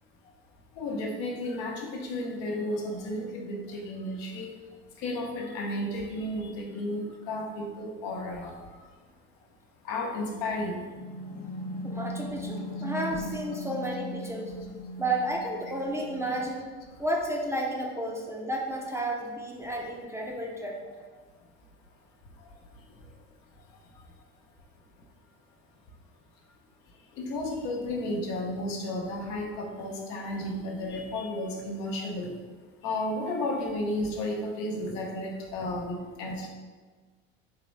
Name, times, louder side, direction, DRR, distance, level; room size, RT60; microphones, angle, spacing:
voice 1, 0.8-4.5 5.0-8.5 9.8-10.8 27.2-32.3 32.8-36.5, left 1 dB, 65° left, 0 dB, 0.9 m, -33 dB
sound 1, 10.9-16.6, equal, 30° left, 0.6 m, -38 dB
voice 2, 11.8-14.5 15.0-16.7 17.0-20.8, right 1 dB, 10° right, -1 dB, 0.6 m, -32 dB
3.7 x 3.0 x 3.3 m, 1.4 s
hypercardioid pair, 85°, 30 cm